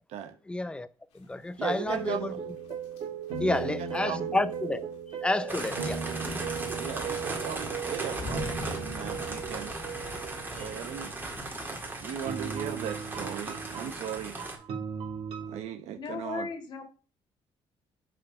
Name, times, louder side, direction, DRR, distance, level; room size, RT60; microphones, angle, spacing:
voice 1, 0.5-0.9 1.1-2.3 3.4-4.9 5.2-6.4 10.6-10.7, left 2 dB, 10° left, 0.5 m, -30 dB
sound 1, 1.1-13.6, left 3 dB, 90° left, 2.4 m, -47 dB
voice 2, 1.6-2.4 3.4-4.3 6.8-9.7 10.5-11.1 12.0-14.4 15.5-16.5, right 9 dB, 85° right, 1.0 m, -37 dB
sound 2, 1.8-11.1 12.3-15.6, right 6 dB, 60° right, 1.8 m, -37 dB
sound 3, 5.5-14.5, right 2 dB, 20° right, 2.0 m, -37 dB
voice 3, 16.0-16.8, left 4 dB, 45° left, 1.9 m, -36 dB
7.9 x 5.2 x 4.9 m
cardioid pair, 135°, 11 cm